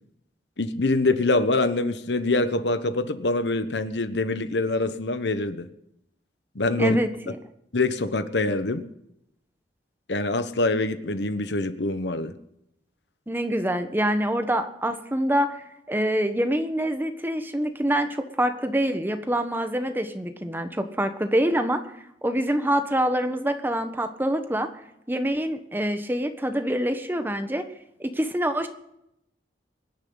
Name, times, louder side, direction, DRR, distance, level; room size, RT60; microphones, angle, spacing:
voice 1, 0.6-5.7 6.5-7.0 7.7-8.8 10.1-12.3, left 2 dB, 80° left, 11 dB, 1.2 m, -24 dB
voice 2, 6.8-7.4 13.3-15.6 15.9-21.8 22.2-24.7 25.1-27.6 28.0-28.7, right 1 dB, 10° right, 8 dB, 1.2 m, -25 dB
24.0 x 10.5 x 4.0 m, 0.79 s
head